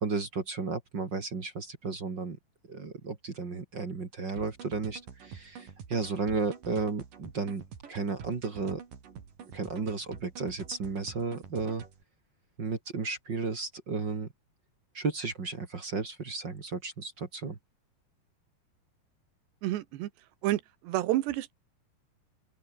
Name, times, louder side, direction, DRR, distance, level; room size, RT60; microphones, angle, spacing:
voice 1, 0.0-2.4 2.7-7.6 7.9-8.8 9.5-11.8 12.6-14.3 14.9-17.6, right 4 dB, 30° right, 2.4 m, -33 dB
sound 1, 4.4-12.0, right 7 dB, 55° right, 4.6 m, -47 dB
voice 2, 19.6-20.1 20.4-21.5, right 15 dB, 85° right, 3.4 m, -29 dB
open air
omnidirectional pair, 4.9 m